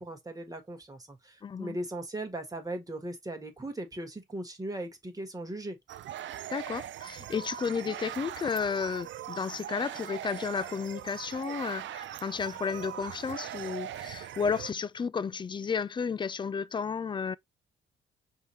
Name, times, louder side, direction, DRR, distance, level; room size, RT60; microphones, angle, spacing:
voice 1, 0.0-5.8, right 1 dB, 15° right, 1.4 m, -38 dB
voice 2, 1.4-1.8 6.5-17.4, left 6 dB, 25° left, 0.3 m, -32 dB
sound 1, 5.9-14.7, right 11 dB, 70° right, 0.4 m, -41 dB
5.4 x 2.9 x 3.1 m
cardioid pair, 100°, 20 cm